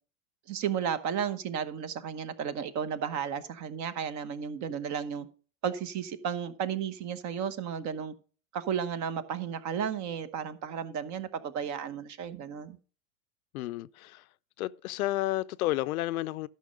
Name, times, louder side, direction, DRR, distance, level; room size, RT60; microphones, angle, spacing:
voice 1, 0.5-5.3 5.6-8.1 8.5-12.8, right 8 dB, 40° right, 1.0 m, -33 dB
voice 2, 13.5-14.2 14.6-16.5, left 16 dB, 75° left, 0.6 m, -31 dB
12.0 x 5.8 x 5.2 m
hypercardioid pair, 105°, 44 cm